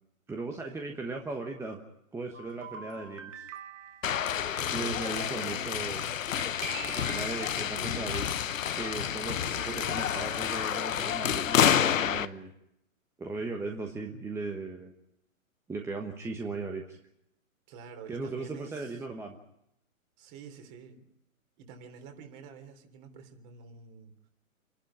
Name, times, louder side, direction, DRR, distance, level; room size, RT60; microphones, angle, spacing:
voice 1, 0.3-1.8 2.1-3.5 4.7-6.0 6.8-8.3 8.7-12.5 13.2-14.9 15.7-17.0 18.1-19.4, right 3 dB, 5° right, 3 dB, 1.1 m, -37 dB
sound 1, 2.3-4.2 6.4-7.9, right 5 dB, 60° right, 2.2 m, -44 dB
sound 2, 4.0-12.3, left 9 dB, 65° left, 1.0 m, -29 dB
voice 2, 4.6-5.7 9.4-10.0 17.7-19.0 20.2-21.1 21.6-24.3, right 5 dB, 35° right, 6 dB, 3.4 m, -48 dB
27.0 x 11.5 x 9.8 m, 0.81 s
figure-of-eight pair, 125°, 42 cm